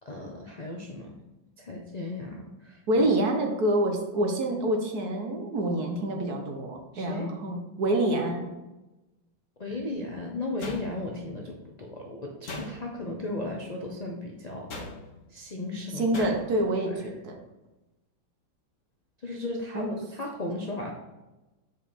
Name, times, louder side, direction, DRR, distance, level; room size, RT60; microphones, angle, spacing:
voice 1, 0.0-1.2 1.6-3.1 6.9-7.3 9.6-14.7 15.3-17.1 19.2-20.9, left 2 dB, 70° left, 0 dB, 0.4 m, -36 dB
voice 2, 2.9-8.4 15.9-17.4 19.7-19.9, right 1 dB, 55° right, 3 dB, 1.5 m, -27 dB
sound 1, 10.6-11.3 12.4-13.1 14.7-15.3 16.1-16.7, left 1 dB, 45° left, 1.4 m, -39 dB
7.7 x 5.0 x 4.3 m, 1.0 s
omnidirectional pair, 2.2 m